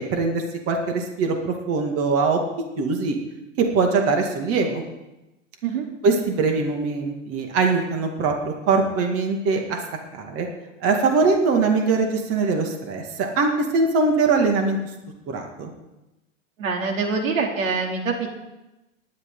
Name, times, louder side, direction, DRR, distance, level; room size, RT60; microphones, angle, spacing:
voice 1, 0.0-2.4 2.8-3.2 3.6-4.8 6.0-9.8 10.1-10.5 10.8-14.8 15.3-15.7, right 4 dB, 35° right, 3 dB, 2.2 m, -22 dB
voice 2, 16.6-18.3, right 4 dB, 80° right, 1 dB, 3.2 m, -25 dB
19.0 x 11.0 x 3.9 m, 0.99 s
hypercardioid pair, 125°, 39 cm